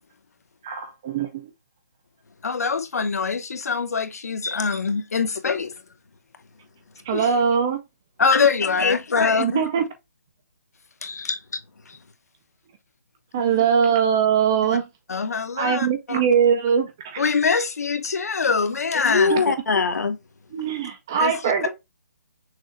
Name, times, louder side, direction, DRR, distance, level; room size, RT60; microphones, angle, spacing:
voice 1, 0.6-1.5 7.1-7.8 9.4-9.8 13.3-14.9 15.6-17.2 19.3-19.4 20.5-21.7, right 7 dB, 10° right, 0.3 m, -21 dB
voice 2, 2.4-5.7 7.1-7.3 8.2-9.4 11.0-11.1 13.4-13.7 15.1-16.3 17.2-19.5 21.2-21.7, left 5 dB, 65° left, 1.0 m, -24 dB
voice 3, 8.8-9.7 11.0-11.6 18.9-20.2, left 4 dB, 90° left, 1.1 m, -23 dB
6.2 x 2.4 x 3.0 m
hypercardioid pair, 175°, 9 cm